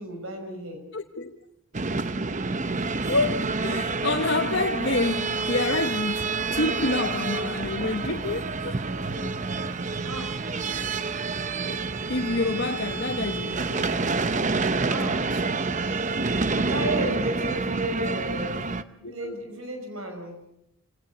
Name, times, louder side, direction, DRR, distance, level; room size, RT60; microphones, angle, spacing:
voice 1, 0.0-0.8 10.0-10.3 14.9-15.2 16.6-18.7 19.0-20.4, right 1 dB, 80° right, 6.0 m, -33 dB
voice 2, 0.9-1.4 2.7-9.3 10.9-11.0 11.4-11.8 12.1-14.1 15.1-15.6 19.0-19.4, left 3 dB, 55° left, 1.0 m, -29 dB
sound 1, 1.7-18.8, right 3 dB, 35° right, 0.8 m, -28 dB
27.0 x 18.0 x 6.8 m
head